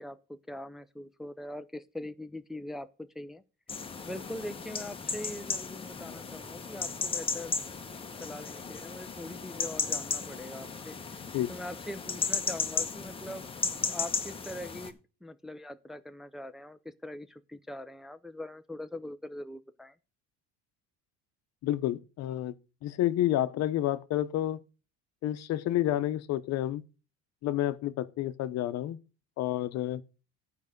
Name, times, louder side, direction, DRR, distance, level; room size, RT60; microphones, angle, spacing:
voice 1, 0.0-3.4 4.0-7.5 8.2-11.0 11.5-19.9, left 1 dB, ahead, 0.5 m, -42 dB
sound 1, 3.7-14.9, left 5 dB, 20° left, 1.0 m, -35 dB
voice 2, 21.6-22.5 22.8-24.6 25.2-26.8 27.4-29.0 29.4-30.0, left 13 dB, 60° left, 0.9 m, -29 dB
11.0 x 4.9 x 6.6 m
cardioid pair, 125°, 30 cm